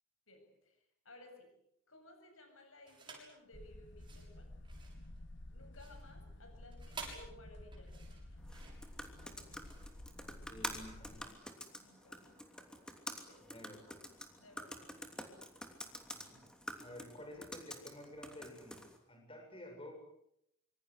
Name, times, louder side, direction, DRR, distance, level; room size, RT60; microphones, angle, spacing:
voice 1, 0.3-0.8 1.0-1.5 1.9-4.5 5.5-8.4 9.0-9.4 11.8-12.4 13.1-13.4 14.4-15.5 16.9-17.0, left 1 dB, 80° left, 5 dB, 7.8 m, -59 dB
sound 1, 2.8-3.4 3.9-11.7, right 4 dB, 25° right, 7.0 m, -53 dB
sound 2, 3.5-11.3, left 1 dB, 60° left, 1.4 m, -52 dB
sound 3, 8.4-19.0, equal, 5° left, 3.0 m, -48 dB
voice 2, 10.5-11.5 13.4-14.1 15.9-16.4 16.8-19.9, left 1 dB, 25° left, 3 dB, 7.0 m, -52 dB
26.0 x 25.5 x 8.2 m, 0.78 s
head